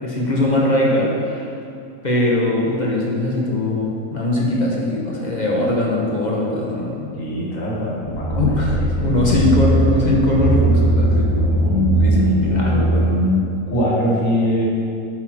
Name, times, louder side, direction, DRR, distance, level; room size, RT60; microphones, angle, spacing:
voice 1, 0.0-1.5 2.0-7.1 8.1-11.7 12.0-13.2, left 2 dB, 30° left, -3 dB, 1.2 m, -21 dB
voice 2, 7.1-8.6 9.0-9.5 11.6-14.7, left 1 dB, 60° left, -5 dB, 2.2 m, -22 dB
sound 1, 8.0-13.1, right 2 dB, 45° right, 1.5 m, -19 dB
8.4 x 6.1 x 4.5 m, 2.6 s
omnidirectional pair, 1.5 m